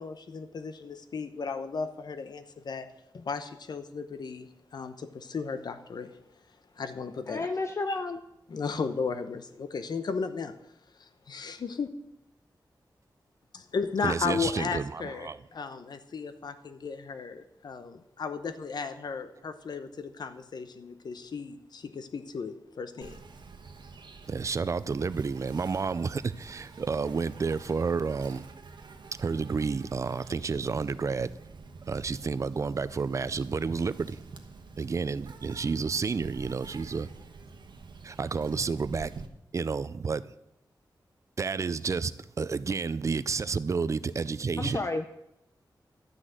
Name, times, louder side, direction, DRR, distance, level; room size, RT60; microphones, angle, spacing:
voice 1, 0.0-2.9 3.1-6.1 6.8-7.5 7.9-8.0 8.5-10.5 11.0-11.9 13.5-23.2, left 5 dB, 65° left, 0.9 m, -35 dB
voice 2, 7.3-8.2 44.6-45.1, left 3 dB, 35° left, 0.6 m, -31 dB
voice 3, 14.0-15.4 24.3-28.5 29.2-31.3 31.9-34.2 34.8-37.1 38.0-39.1 39.5-40.2 41.4-44.9, right 5 dB, 40° right, 0.5 m, -30 dB
Insect, 23.0-39.3, right 4 dB, 85° right, 1.2 m, -48 dB
12.0 x 6.3 x 9.0 m
wide cardioid pair, 170°, 8 cm